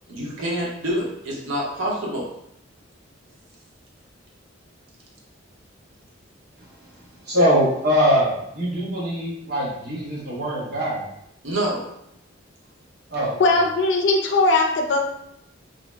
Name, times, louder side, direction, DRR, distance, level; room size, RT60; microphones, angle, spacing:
voice 1, 0.1-2.3 11.4-11.9, right 1 dB, 85° right, -3 dB, 0.8 m, -27 dB
voice 2, 7.2-11.0 13.1-13.4, equal, 55° right, -6 dB, 1.0 m, -22 dB
voice 3, 13.4-15.0, left 2 dB, 65° left, 3 dB, 0.4 m, -19 dB
2.7 x 2.0 x 3.2 m, 0.77 s
head